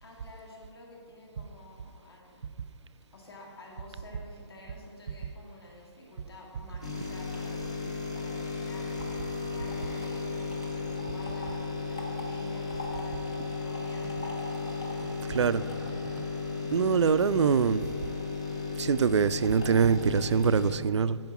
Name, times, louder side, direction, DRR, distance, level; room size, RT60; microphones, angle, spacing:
voice 1, 0.0-7.6 8.1-14.4, left 2 dB, 60° left, -2 dB, 2.3 m, -50 dB
sound 1, 6.8-20.8, left 4 dB, 10° left, 0.3 m, -35 dB
voice 2, 15.3-15.6 16.7-17.9 18.8-21.2, right 6 dB, 80° right, 15 dB, 0.4 m, -24 dB
9.2 x 5.0 x 5.9 m, 2.3 s
hypercardioid pair, 175°, 15 cm